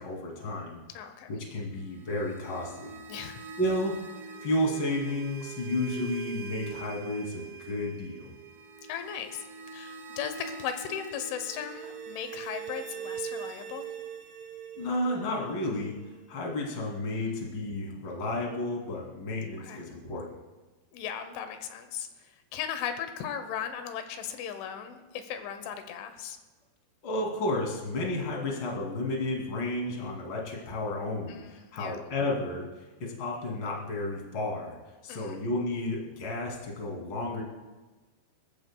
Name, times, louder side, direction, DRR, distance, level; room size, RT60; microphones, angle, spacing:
voice 1, 0.0-0.8 1.3-3.0 3.6-4.0 4.4-8.3 14.8-15.9 16.3-20.4 27.0-32.6 33.0-34.7 35.0-37.4, left 1 dB, 30° left, -2 dB, 2.5 m, -32 dB
voice 2, 0.9-1.3 3.1-3.4 8.9-9.4 9.7-13.9 17.2-17.3 19.6-19.9 20.9-22.1 22.5-26.4 31.3-32.0 35.1-35.4, left 8 dB, 85° left, 8 dB, 3.4 m, -37 dB
sound 1, 1.8-16.7, right 6 dB, 85° right, 3.7 m, -43 dB
25.5 x 14.0 x 2.3 m, 1.3 s
omnidirectional pair, 5.4 m